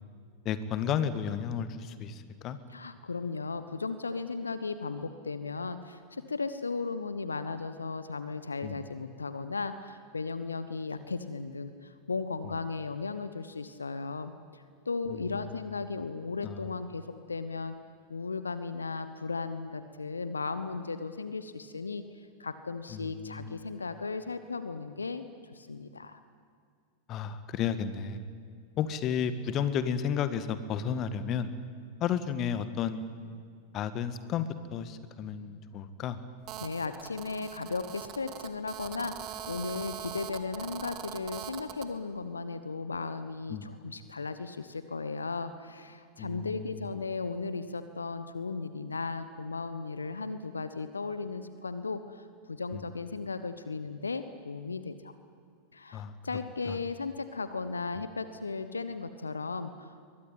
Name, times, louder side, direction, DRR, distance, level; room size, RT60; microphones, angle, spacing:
voice 1, 0.4-2.6 8.6-8.8 15.1-15.6 16.4-16.7 22.9-23.6 27.1-28.2 28.8-31.5 32.0-33.0 33.7-36.2 43.5-43.7 46.2-46.8 52.7-52.8 55.9-56.2 56.7-56.8, left 8 dB, 35° left, 12 dB, 1.7 m, -33 dB
voice 2, 2.7-17.7 18.1-25.2 25.5-26.2 36.6-39.1 39.5-55.1 55.7-60.0, left 4 dB, 75° left, 11 dB, 1.2 m, -36 dB
Telephone, 36.5-41.9, right 10 dB, 35° right, 1.7 m, -42 dB
23.0 x 22.0 x 9.2 m, 2.1 s
figure-of-eight pair, 90°, 0 cm